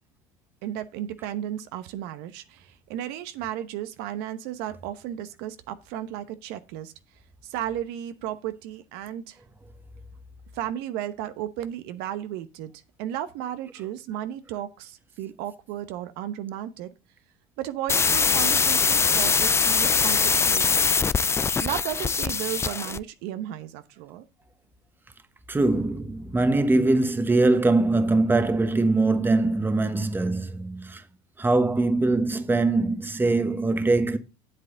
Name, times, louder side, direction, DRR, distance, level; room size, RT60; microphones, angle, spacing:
voice 1, 0.6-6.9 7.4-9.4 10.5-12.7 13.0-16.9 17.6-20.9 21.6-24.2, right 11 dB, 65° right, 1.0 m, -34 dB
sound 1, 17.9-23.0, left 5 dB, 15° left, 0.4 m, -22 dB
voice 2, 25.5-31.0 31.4-34.2, right 2 dB, 10° right, 1.2 m, -22 dB
8.1 x 7.7 x 3.8 m
supercardioid pair, 105°, 17 cm